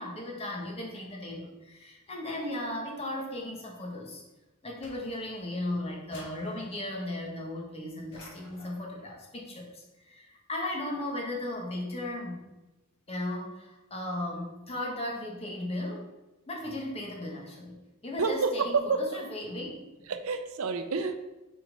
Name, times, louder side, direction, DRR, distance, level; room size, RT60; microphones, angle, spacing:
voice 1, 0.0-4.2 4.6-12.4 13.1-16.1 16.5-19.7, left 1 dB, 30° left, -1 dB, 1.6 m, -36 dB
sound 1, 4.8-5.6 6.1-7.0 8.1-8.9, left 2 dB, 60° left, 1.6 m, -52 dB
voice 2, 18.2-19.1 20.1-21.3, right 4 dB, 70° right, 9 dB, 0.6 m, -29 dB
6.4 x 4.4 x 5.2 m, 1.1 s
head